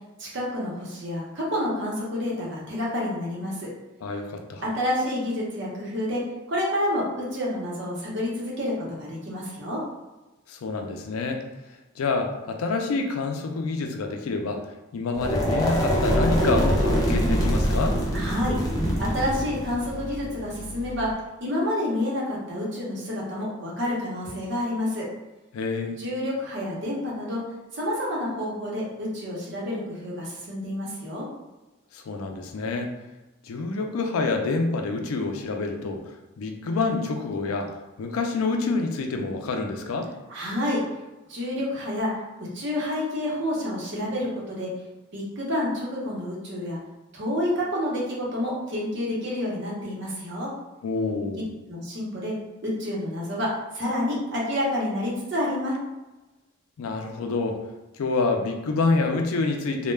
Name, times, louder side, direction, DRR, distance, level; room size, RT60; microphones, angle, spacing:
voice 1, 0.2-3.7 4.6-6.2 6.5-9.8 18.1-18.6 19.0-21.1 21.4-25.1 26.0-27.4 27.7-31.2 40.3-40.8 41.3-42.1 42.4-44.7 45.1-46.8 47.1-50.5 51.3-51.4 51.7-52.3 52.6-55.7, left 1 dB, 55° right, -5 dB, 0.8 m, -29 dB
voice 2, 4.0-4.6 10.5-11.4 12.0-14.6 14.9-18.0 25.5-26.0 31.9-32.9 33.4-40.1 50.8-51.4 56.8-57.6 57.9-59.9, left 3 dB, 90° left, 4 dB, 0.4 m, -27 dB
sound 1, 15.1-21.1, equal, 15° left, 0.4 m, -24 dB
2.2 x 2.1 x 3.1 m, 1.1 s
head